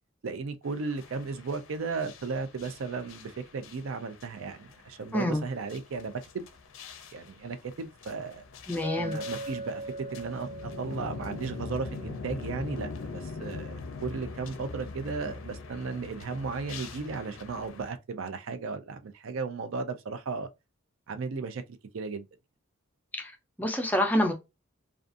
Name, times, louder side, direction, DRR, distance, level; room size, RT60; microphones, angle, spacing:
voice 1, 0.2-6.5 7.1-8.4 9.0-9.9 10.1-20.5 21.1-21.6 21.9-22.3, right 4 dB, 70° right, 0.4 m, -35 dB
sound 1, 0.7-17.9, left 4 dB, 70° left, 0.5 m, -43 dB
voice 2, 8.7-9.2 23.1-23.3 23.6-24.3, left 1 dB, 10° left, 0.5 m, -27 dB
Chink clink, 8.8-13.0, right 2 dB, 45° right, 1.1 m, -41 dB
2.5 x 2.4 x 2.4 m
head